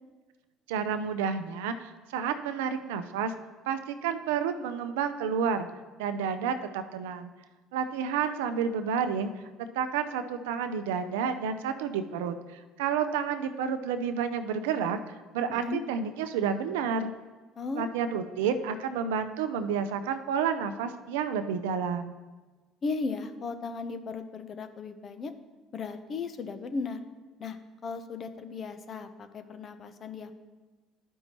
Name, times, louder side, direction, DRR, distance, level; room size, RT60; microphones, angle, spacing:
voice 1, 0.7-3.3 3.7-5.7 6.0-7.3 7.7-9.3 9.6-15.0 15.3-17.1 17.8-22.1, right 7 dB, 85° right, 9 dB, 0.5 m, -30 dB
voice 2, 15.5-15.8 17.6-17.9 22.8-25.3 25.7-27.0 27.4-27.6 27.8-30.3, left 4 dB, 45° left, 9 dB, 0.7 m, -36 dB
12.0 x 5.4 x 3.0 m, 1.3 s
supercardioid pair, 80°, 0 cm